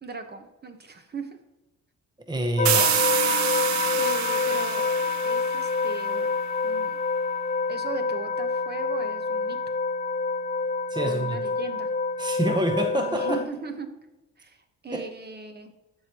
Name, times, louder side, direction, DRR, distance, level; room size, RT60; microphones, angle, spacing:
voice 1, 0.0-1.4 4.0-4.9 5.2-6.3 6.6-7.0 7.7-9.6 11.0-11.9 13.0-13.9 14.4-15.7, right 4 dB, 35° right, 7 dB, 1.1 m, -38 dB
voice 2, 2.3-2.9 10.9-11.4 12.2-13.4 14.9-15.0, right 1 dB, 15° right, 4 dB, 0.9 m, -26 dB
sound 1, 2.6-13.5, left 4 dB, 25° left, 0.5 m, -27 dB
sound 2, 2.7-6.3, right 12 dB, 75° right, 0.6 m, -27 dB
13.0 x 4.7 x 3.0 m, 1.0 s
cardioid pair, 75°, 29 cm